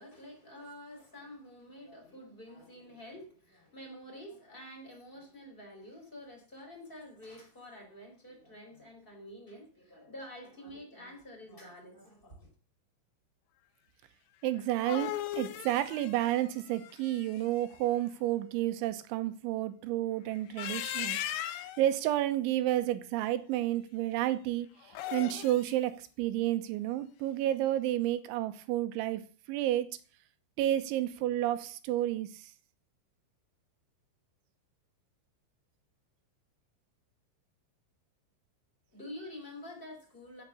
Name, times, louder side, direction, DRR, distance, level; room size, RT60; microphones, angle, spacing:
voice 1, 0.0-12.5 38.9-40.4, left 1 dB, 10° left, 3.8 m, -48 dB
voice 2, 14.4-29.2 29.5-29.9 30.6-32.5, right 13 dB, 80° right, 3.2 m, -31 dB
sound 1, 14.6-17.6 20.4-21.9 24.8-25.7, left 13 dB, 80° left, 3.5 m, -38 dB
16.0 x 6.7 x 7.1 m
omnidirectional pair, 5.7 m